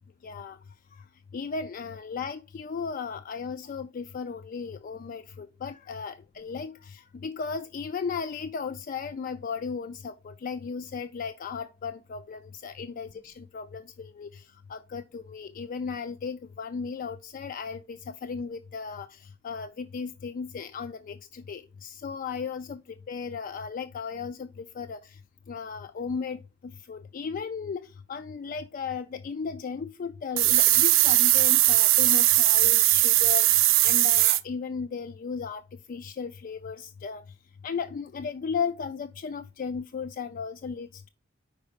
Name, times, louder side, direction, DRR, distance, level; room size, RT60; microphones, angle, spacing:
voice 1, 0.2-0.6 0.9-1.0 1.3-22.8 23.1-25.2 25.5-35.6 35.9-37.2 37.6-41.1, left 5 dB, 45° left, 0.3 m, -35 dB
sound 1, 30.4-34.4, right 16 dB, 85° right, 0.5 m, -20 dB
5.2 x 4.8 x 5.1 m
head